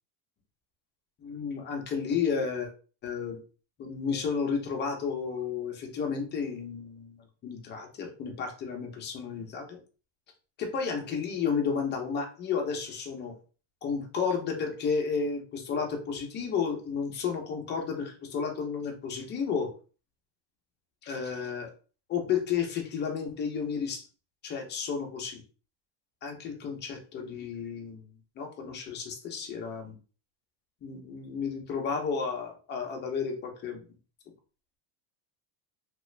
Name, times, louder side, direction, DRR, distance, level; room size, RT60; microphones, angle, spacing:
voice 1, 1.2-2.7 3.0-3.4 3.8-9.8 10.6-13.3 13.8-19.7 21.0-21.7 22.1-24.1 24.4-25.4 26.2-28.1 28.4-29.9 30.8-33.8, left 6 dB, 25° left, 2 dB, 0.4 m, -32 dB
2.9 x 2.4 x 3.1 m, 0.37 s
cardioid pair, 160°, 50 cm